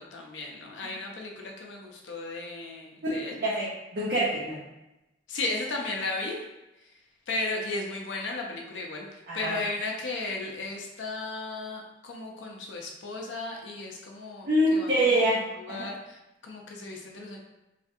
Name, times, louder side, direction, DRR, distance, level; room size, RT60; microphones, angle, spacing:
voice 1, 0.0-3.4 5.3-6.3 7.3-9.1 9.3-15.2 15.6-17.4, left 2 dB, 85° left, 0 dB, 0.6 m, -35 dB
voice 2, 3.4-4.6 9.3-9.6 14.5-15.4 15.7-15.9, right 1 dB, 55° right, -8 dB, 0.8 m, -25 dB
3.3 x 2.4 x 2.6 m, 0.95 s
head